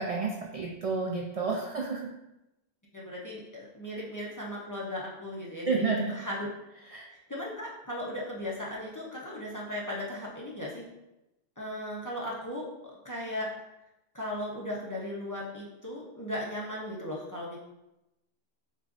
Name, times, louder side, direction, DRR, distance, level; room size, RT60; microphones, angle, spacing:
voice 1, 0.0-2.0 5.7-6.1 6.9-7.0, right 4 dB, 50° right, -1 dB, 0.4 m, -30 dB
voice 2, 2.9-6.5 7.3-10.8 11.6-13.5 14.1-17.6, left 1 dB, 20° left, -5 dB, 0.6 m, -37 dB
6.3 x 2.5 x 2.5 m, 0.93 s
omnidirectional pair, 1.1 m